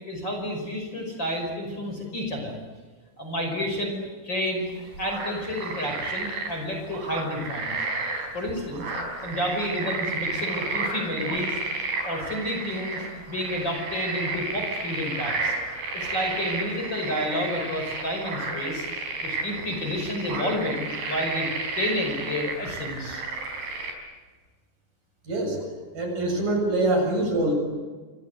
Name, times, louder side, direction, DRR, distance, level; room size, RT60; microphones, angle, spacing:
voice 1, 0.0-2.6 3.2-4.7 5.0-7.8 8.3-8.9 9.2-11.6 12.0-15.5 15.9-18.9 19.2-21.5 21.8-23.2, left 1 dB, 25° left, 3 dB, 6.0 m, -30 dB
sound 1, 4.7-23.9, right 3 dB, 75° right, 6.6 m, -32 dB
voice 2, 25.3-25.6 25.9-27.5, right 2 dB, 50° right, 2 dB, 8.7 m, -24 dB
28.0 x 26.5 x 8.2 m, 1.4 s
omnidirectional pair, 4.9 m